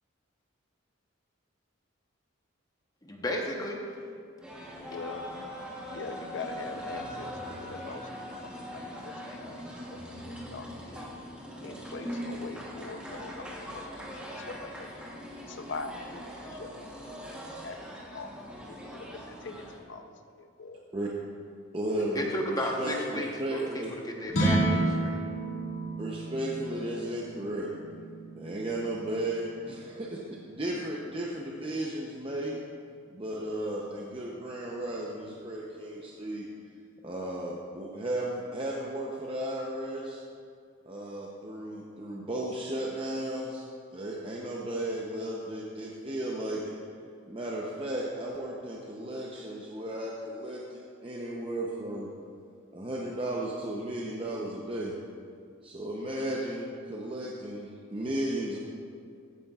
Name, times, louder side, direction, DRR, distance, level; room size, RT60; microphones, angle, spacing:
voice 1, 3.0-3.8 22.1-25.2, left 1 dB, 20° left, 0 dB, 0.9 m, -33 dB
sound 1, 4.4-19.8, equal, 5° right, 1.0 m, -41 dB
voice 2, 4.8-5.5 5.8-8.1 8.7-11.1 11.6-13.8 14.1-15.1 15.5-17.0 17.3-18.3 18.6-20.0 20.4-20.8, left 3 dB, 60° left, 6 dB, 0.6 m, -43 dB
voice 3, 21.7-23.9 26.0-27.7 28.3-32.6 33.1-36.5 37.0-40.2 40.9-43.7 43.9-46.7 47.3-52.1 52.7-54.9 55.6-58.6, right 1 dB, 25° right, -3 dB, 0.7 m, -34 dB
sound 2, 24.3-30.6, right 2 dB, 80° left, 1.8 m, -32 dB
14.5 x 9.5 x 2.4 m, 2.3 s
head